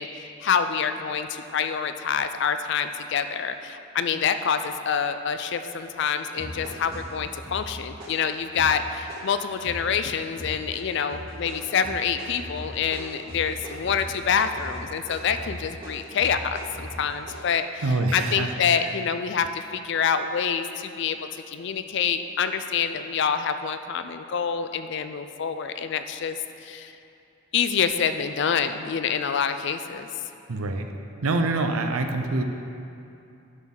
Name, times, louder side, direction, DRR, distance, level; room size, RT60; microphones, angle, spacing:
voice 1, 0.0-17.8 18.1-21.2 21.5-27.0 27.5-30.1, left 7 dB, 55° left, 9 dB, 0.4 m, -26 dB
sound 1, 5.8-6.0 6.4-10.0 10.4-10.8 11.1-17.5, equal, 45° right, 1.6 m, -39 dB
voice 2, 17.8-18.5 18.8-18.9 30.5-30.9 31.2-32.4, right 2 dB, 85° right, 5 dB, 0.6 m, -25 dB
11.0 x 6.2 x 3.8 m, 2.7 s
head